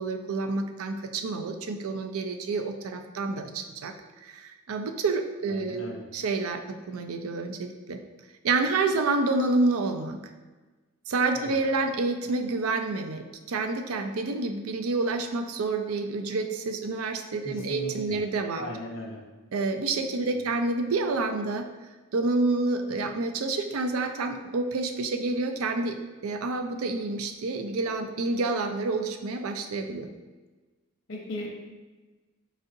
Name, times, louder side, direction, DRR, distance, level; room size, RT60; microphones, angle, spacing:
voice 1, 0.0-3.9 4.2-5.9 6.1-8.0 8.4-10.2 11.1-18.7 19.5-21.7 22.1-26.0 26.2-30.1, right 3 dB, 85° right, 6 dB, 0.5 m, -28 dB
voice 2, 5.5-6.1 11.3-11.6 17.4-18.2 18.5-19.2 20.3-20.5 31.1-31.6, left 1 dB, 65° left, -1 dB, 0.9 m, -37 dB
4.6 x 4.0 x 2.6 m, 1.2 s
head